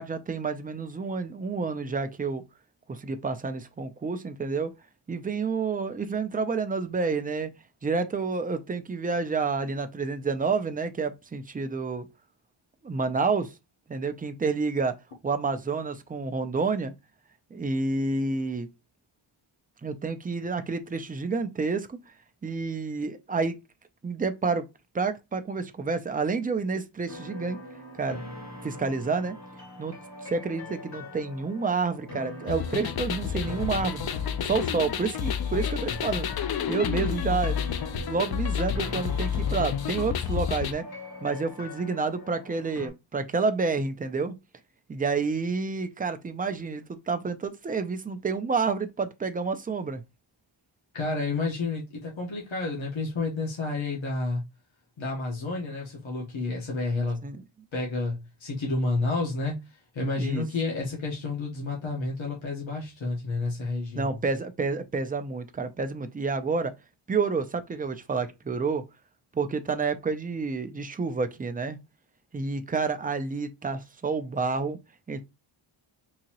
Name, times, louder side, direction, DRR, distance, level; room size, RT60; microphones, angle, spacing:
voice 1, 0.0-2.4 2.9-4.7 5.1-7.5 7.8-12.1 12.8-13.5 13.9-15.0 15.2-16.9 17.5-18.7 19.8-22.0 22.4-23.6 24.0-24.6 24.9-27.6 27.9-28.2 28.6-29.4 29.8-29.9 30.2-34.0 34.4-36.3 36.7-37.6 38.0-40.8 41.2-44.3 44.9-50.0 57.2-57.4 60.2-60.4 63.9-66.7 67.1-68.8 69.3-71.8 72.3-74.8 75.1-75.2, right 4 dB, 20° right, 0.4 m, -29 dB
sound 1, 27.1-42.9, left 2 dB, 35° left, 2.0 m, -42 dB
sound 2, 32.5-40.7, left 8 dB, 50° left, 0.5 m, -30 dB
voice 2, 50.9-54.4 55.0-57.3 57.7-59.5 59.9-64.2, left 3 dB, 70° left, 1.2 m, -30 dB
3.9 x 2.8 x 2.9 m
wide cardioid pair, 135°, 48 cm